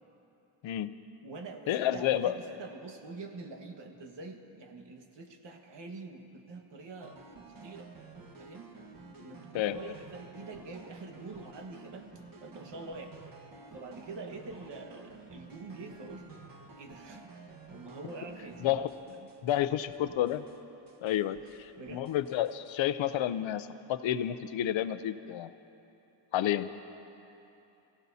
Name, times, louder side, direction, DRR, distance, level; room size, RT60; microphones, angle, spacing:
voice 1, 0.6-0.9 1.7-2.4 9.5-9.9 18.6-18.9 19.4-20.4 21.0-25.5 26.3-26.7, left 12 dB, 85° left, 12 dB, 0.7 m, -30 dB
voice 2, 1.2-7.2 7.5-7.9 8.4-8.7 9.2-13.3 13.7-16.3 16.8-19.3 21.8-22.1, right 3 dB, 70° right, 4 dB, 1.6 m, -45 dB
sound 1, 7.0-19.6 19.9-20.6 20.9-22.8, right 3 dB, 50° right, 1.5 m, -51 dB
28.5 x 15.5 x 2.8 m, 2.9 s
cardioid pair, 95°, 45 cm